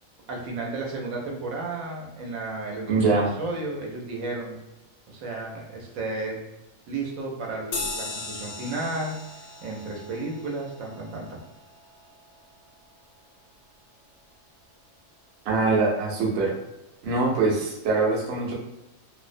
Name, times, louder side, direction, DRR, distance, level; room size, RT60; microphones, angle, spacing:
voice 1, 0.3-4.6 5.1-6.4 6.9-9.2 9.6-11.4, right 2 dB, 90° right, -1 dB, 1.1 m, -33 dB
voice 2, 2.9-3.3 15.4-16.5 17.0-18.5, right 3 dB, 60° right, -3 dB, 0.8 m, -23 dB
sound 1, 7.7-12.6, left 3 dB, 65° left, 0.6 m, -38 dB
2.6 x 2.0 x 2.4 m, 0.94 s
omnidirectional pair, 1.4 m